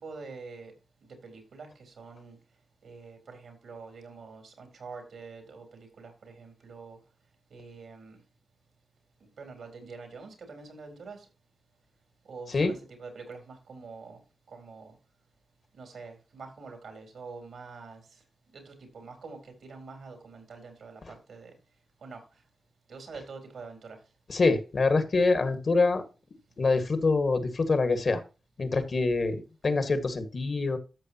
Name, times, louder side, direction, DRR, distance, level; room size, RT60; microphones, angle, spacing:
voice 1, 0.0-0.7 1.5-1.7 2.0-2.3 2.8-3.2 3.4-5.6 6.7-6.9 7.5-8.0 9.4-11.2 12.3-12.5 13.3-13.4 13.7-14.1 14.6-14.8 15.8-18.0 19.0-19.4 19.7-21.0 21.3-21.5 22.0-22.2 22.9-23.8, right 4 dB, 85° right, 4 dB, 4.0 m, -44 dB
voice 2, 24.3-26.0 26.6-28.2 28.6-30.8, left 3 dB, 60° left, 9 dB, 1.8 m, -25 dB
13.5 x 6.8 x 2.9 m, 0.31 s
cardioid pair, 60°, 0 cm